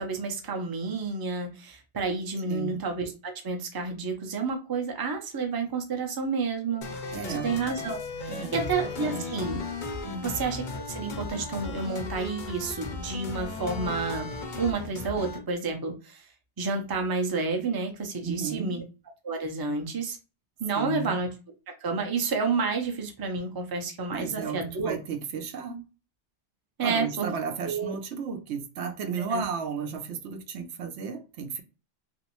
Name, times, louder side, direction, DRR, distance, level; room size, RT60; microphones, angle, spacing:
voice 1, 0.0-7.1 7.4-9.6 10.2-14.3 14.6-16.3 16.6-18.8 19.2-20.2 20.6-21.3 21.8-25.0 26.8-27.3 27.6-27.9 29.2-29.4, right 4 dB, 30° right, 0.5 m, -30 dB
voice 2, 2.5-2.8 7.1-7.6 8.3-9.4 10.0-10.4 18.2-18.8 20.7-21.2 24.1-25.8 26.8-31.6, right 5 dB, 80° right, 0.9 m, -34 dB
sound 1, 6.8-15.4, left 3 dB, 50° left, 0.7 m, -36 dB
3.0 x 2.6 x 2.9 m
omnidirectional pair, 1.2 m